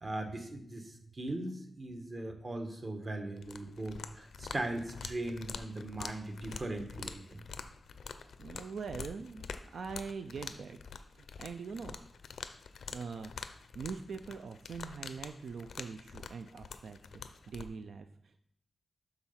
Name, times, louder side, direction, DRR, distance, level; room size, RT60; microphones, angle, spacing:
voice 1, 0.0-7.4, right 2 dB, 40° right, 5 dB, 1.3 m, -39 dB
sound 1, 3.4-17.7, left 5 dB, 85° left, 0.5 m, -46 dB
voice 2, 8.4-9.4 9.7-12.0 12.9-13.3 13.7-17.0 17.3-18.4, right 5 dB, 85° right, 8 dB, 0.4 m, -43 dB
7.0 x 3.8 x 5.7 m, 0.70 s
cardioid pair, 70°, 0 cm